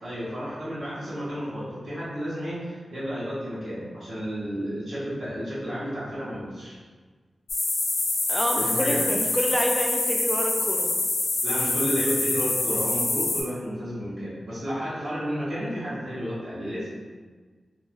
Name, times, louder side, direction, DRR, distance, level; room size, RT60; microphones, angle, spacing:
voice 1, 0.0-6.8 8.5-9.0 11.4-16.9, equal, 70° right, -10 dB, 0.9 m, -32 dB
sound 1, 7.5-13.4, left 2 dB, 75° left, 0.4 m, -26 dB
voice 2, 8.3-10.9, equal, 5° right, 1 dB, 0.3 m, -27 dB
2.9 x 2.4 x 2.4 m, 1.4 s
wide cardioid pair, 155°, 0 cm